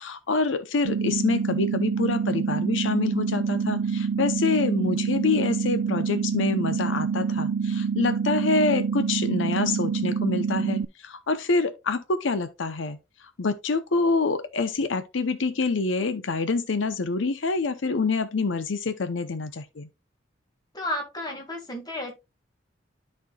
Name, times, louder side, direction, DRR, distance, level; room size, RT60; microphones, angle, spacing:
voice 1, 0.0-19.9, left 4 dB, 80° left, 0.7 m, -26 dB
sound 1, 0.9-10.9, right 6 dB, 80° right, 0.4 m, -26 dB
voice 2, 20.7-22.2, left 1 dB, 20° left, 1.9 m, -32 dB
13.0 x 4.4 x 2.3 m
head